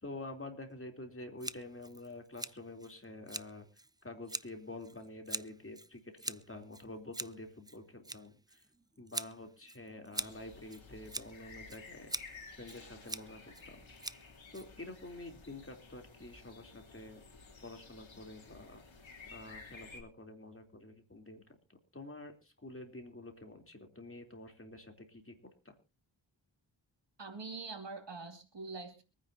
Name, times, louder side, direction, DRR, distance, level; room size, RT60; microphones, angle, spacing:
voice 1, 0.0-3.7 4.0-8.6 9.0-12.1 12.6-13.8 14.5-17.2 17.6-18.8 19.3-21.4 21.7-25.4 25.7-25.8, left 2 dB, 30° left, 4 dB, 3.4 m, -48 dB
Scissors, 1.4-15.1, right 2 dB, 10° right, 0.6 m, -45 dB
sound 1, 10.2-20.0, left 4 dB, 80° left, 3.5 m, -54 dB
voice 2, 27.2-29.0, right 4 dB, 65° right, 6 dB, 2.6 m, -44 dB
25.0 x 9.9 x 2.8 m, 0.32 s
wide cardioid pair, 60°, 46 cm